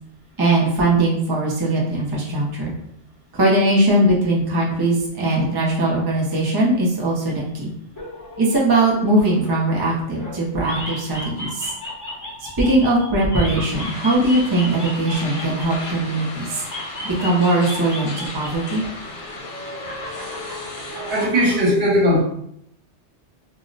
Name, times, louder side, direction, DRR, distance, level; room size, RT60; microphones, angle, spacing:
voice 1, 0.4-2.7 3.3-7.7 8.4-11.7 12.6-16.6 17.0-18.8, right 1 dB, 30° right, -4 dB, 0.5 m, -20 dB
sound 1, 7.9-10.3 10.6-16.2 16.6-18.7 19.0-21.6, left 1 dB, 20° left, 0.7 m, -34 dB
sound 2, 13.7-21.3, left 2 dB, 65° left, 0.8 m, -35 dB
voice 2, 21.1-22.2, equal, 60° right, -3 dB, 1.1 m, -18 dB
2.3 x 2.0 x 3.8 m, 0.72 s
omnidirectional pair, 1.2 m